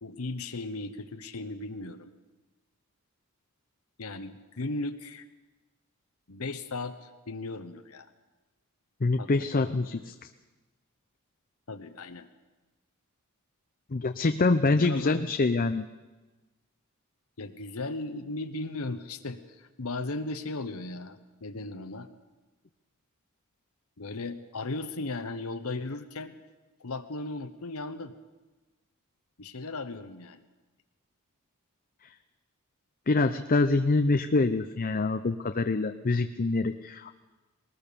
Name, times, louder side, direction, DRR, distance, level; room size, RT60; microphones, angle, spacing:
voice 1, 0.0-2.1 4.0-5.3 6.3-8.1 9.2-9.7 10.0-10.1 11.7-12.3 14.7-15.3 17.4-22.1 24.0-26.3 26.8-28.1 29.4-30.4, left 2 dB, 70° left, 8 dB, 1.0 m, -37 dB
voice 2, 9.0-10.1 13.9-15.9 33.1-37.2, left 3 dB, 40° left, 8 dB, 0.6 m, -25 dB
20.5 x 19.0 x 6.9 m, 1.2 s
head